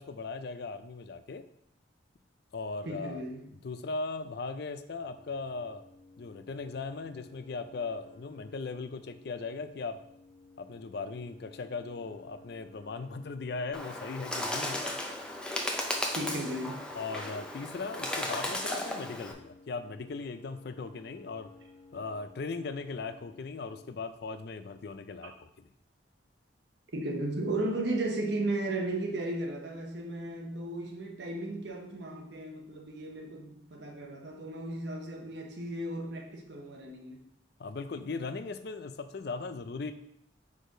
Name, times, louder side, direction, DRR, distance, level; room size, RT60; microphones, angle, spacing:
voice 1, 0.0-1.4 2.5-3.2 3.5-5.8 6.2-10.0 10.6-14.9 16.9-21.5 21.9-25.3 37.6-39.9, left 4 dB, 60° left, 10 dB, 0.4 m, -38 dB
voice 2, 2.8-3.4 16.1-16.8 26.9-37.2, right 2 dB, 65° right, 1 dB, 1.1 m, -35 dB
sound 1, 5.0-23.9, left 3 dB, 40° left, 1.2 m, -56 dB
Bird, 13.7-19.3, left 1 dB, 5° left, 0.6 m, -35 dB
4.9 x 4.4 x 5.0 m, 0.74 s
head